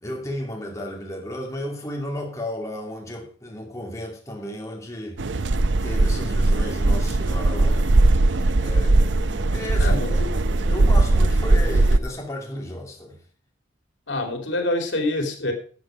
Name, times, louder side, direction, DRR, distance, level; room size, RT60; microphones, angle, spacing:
voice 1, 0.0-5.5 5.8-8.3 8.6-9.2 9.5-10.3 10.7-13.2, left 1 dB, 15° left, 2.6 m, -34 dB
sound 1, 5.2-12.0, right 2 dB, 85° right, 0.7 m, -19 dB
voice 2, 9.8-10.3 10.6-10.9 14.1-15.5, left 1 dB, 90° left, 3.0 m, -26 dB
sound 2, 10.4-12.0, equal, 15° right, 5.4 m, -42 dB
13.0 x 8.0 x 4.9 m
head